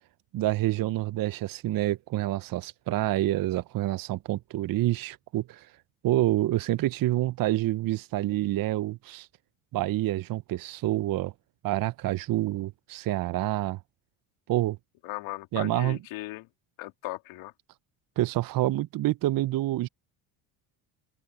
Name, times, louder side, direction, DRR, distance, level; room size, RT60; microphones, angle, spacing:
voice 1, 0.3-5.7 6.0-9.3 9.7-11.3 11.6-13.8 14.5-14.8 15.5-16.0 18.2-19.9, right 15 dB, 45° right, 0.7 m, -27 dB
voice 2, 15.0-16.5 16.8-17.5, left 19 dB, 75° left, 3.1 m, -37 dB
open air
supercardioid pair, 90°, 47 cm